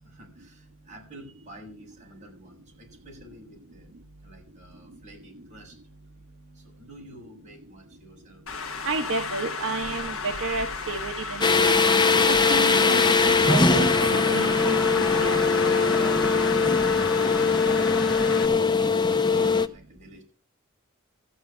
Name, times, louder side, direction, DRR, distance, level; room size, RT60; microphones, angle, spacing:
voice 1, 0.0-3.9 4.2-5.8 6.5-8.4 18.4-20.2, right 1 dB, 35° right, 0 dB, 7.5 m, -49 dB
Traffic noise roadway noise, 8.5-18.5, left 4 dB, 75° left, 1.3 m, -33 dB
voice 2, 8.8-11.7 12.2-15.4, right 3 dB, 70° right, 3 dB, 1.4 m, -31 dB
sound 1, 11.4-19.7, left 4 dB, 20° left, 0.8 m, -21 dB
14.5 x 5.6 x 9.2 m, 0.38 s
head